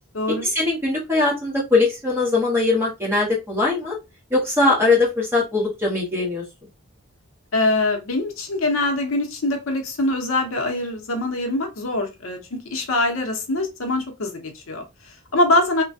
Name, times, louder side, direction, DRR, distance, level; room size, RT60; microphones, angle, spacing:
voice 1, 0.4-4.0 4.3-6.4, left 3 dB, 10° right, -3 dB, 1.2 m, -21 dB
voice 2, 7.5-12.4 12.7-15.8, left 2 dB, 75° left, 4 dB, 0.7 m, -23 dB
3.2 x 2.2 x 2.6 m, 0.24 s
head